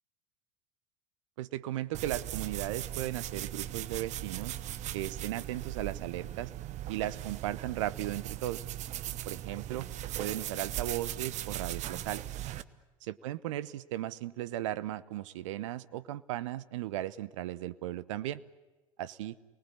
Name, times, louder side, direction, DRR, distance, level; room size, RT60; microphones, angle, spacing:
voice 1, 1.4-4.6 4.9-6.5 6.9-8.6 9.3-9.9 10.2-12.2 13.0-18.4 19.0-19.4, right 14 dB, 65° right, 17 dB, 0.8 m, -36 dB
sound 1, 1.9-12.6, right 13 dB, 40° right, 1.1 m, -39 dB
29.0 x 20.0 x 9.8 m, 1.2 s
figure-of-eight pair, 75°, 17 cm